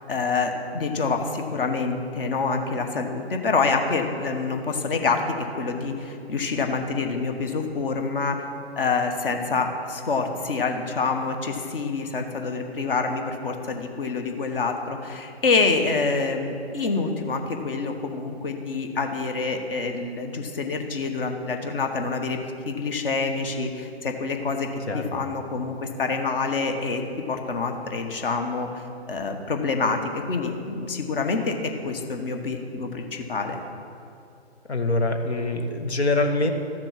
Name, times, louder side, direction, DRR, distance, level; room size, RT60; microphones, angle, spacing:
voice 1, 0.1-5.2 5.6-8.5 8.8-22.4 22.6-24.7 24.9-31.6 31.8-33.6, left 4 dB, 55° left, 5 dB, 1.4 m, -27 dB
voice 2, 34.7-36.5, left 2 dB, 80° left, 6 dB, 1.4 m, -24 dB
13.5 x 6.7 x 5.9 m, 2.6 s
figure-of-eight pair, 135°, 33 cm